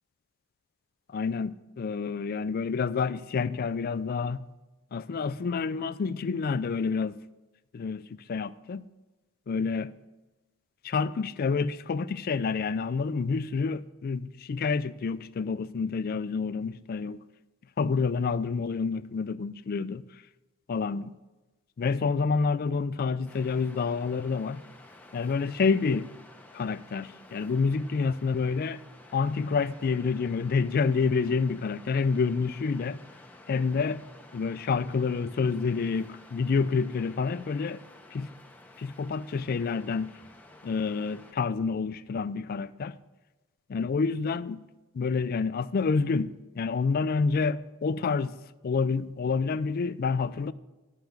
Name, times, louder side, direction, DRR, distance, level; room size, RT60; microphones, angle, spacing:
voice 1, 1.1-4.4 4.9-7.2 7.7-8.8 9.5-9.9 10.8-17.2 17.8-20.2 20.7-21.1 21.8-24.6 25.1-26.1 26.5-28.8 29.1-33.0 33.5-34.0 34.3-37.8 38.1-38.3 38.8-40.1 40.6-43.0 43.7-44.6 44.9-48.3 48.6-50.5, left 5 dB, 40° left, 0.3 m, -28 dB
Waves surf, 23.3-41.3, left 2 dB, 5° left, 0.7 m, -52 dB
11.5 x 5.8 x 6.5 m
head